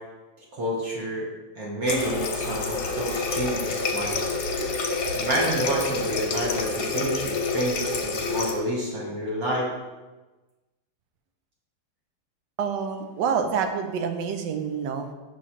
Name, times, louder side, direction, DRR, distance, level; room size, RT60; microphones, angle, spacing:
voice 1, 0.5-1.3 1.6-4.3 5.1-9.7, equal, 50° right, -4 dB, 1.4 m, -29 dB
Water tap faucet, 1.9-8.6, left 3 dB, 60° left, 1.2 m, -28 dB
voice 2, 12.6-15.1, right 6 dB, 70° right, 6 dB, 1.1 m, -27 dB
6.1 x 3.2 x 5.7 m, 1.2 s
omnidirectional pair, 2.3 m